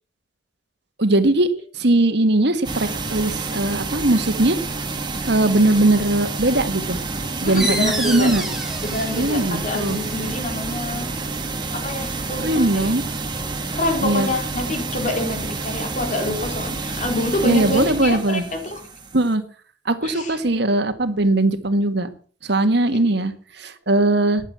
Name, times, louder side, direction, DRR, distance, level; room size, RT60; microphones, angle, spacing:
voice 1, 1.0-1.5 1.8-4.6 5.2-7.0 7.4-8.4 9.2-10.0 12.4-13.0 14.0-14.3 17.4-18.5 19.1-19.4 19.9-22.1 22.5-23.3 23.6-24.4, right 2 dB, 65° right, 9 dB, 1.9 m, -19 dB
sound 1, 2.6-19.3, right 3 dB, 25° right, 1.9 m, -29 dB
voice 2, 7.4-8.3 8.8-11.1 11.7-12.9 13.7-18.8 20.0-20.4 22.9-23.0, left 2 dB, 45° left, 4 dB, 4.0 m, -27 dB
sound 2, 7.5-12.8, right 1 dB, ahead, 2.2 m, -32 dB
14.5 x 10.5 x 7.4 m, 0.44 s
head